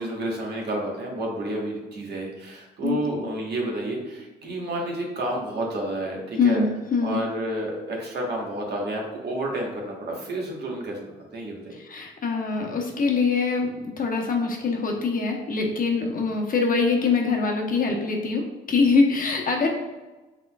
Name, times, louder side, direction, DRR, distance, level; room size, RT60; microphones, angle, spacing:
voice 1, 0.0-6.7 7.0-11.8, right 1 dB, 55° right, -1 dB, 1.3 m, -30 dB
voice 2, 2.8-3.3 6.4-7.2 11.7-19.7, left 4 dB, 45° left, 1 dB, 0.9 m, -24 dB
5.5 x 3.8 x 2.3 m, 1.1 s
cardioid pair, 90°, 20 cm